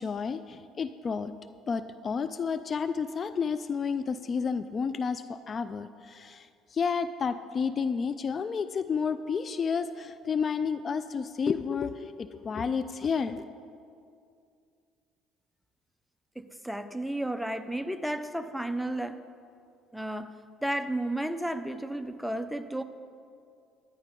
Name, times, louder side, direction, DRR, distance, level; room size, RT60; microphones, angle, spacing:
voice 1, 0.0-1.3 1.7-13.5, left 6 dB, 40° left, 12 dB, 0.4 m, -31 dB
voice 2, 16.4-19.2 19.9-20.3 20.6-22.8, right 1 dB, ahead, 10 dB, 0.7 m, -32 dB
13.5 x 10.5 x 3.7 m, 2.4 s
supercardioid pair, 70°, 0 cm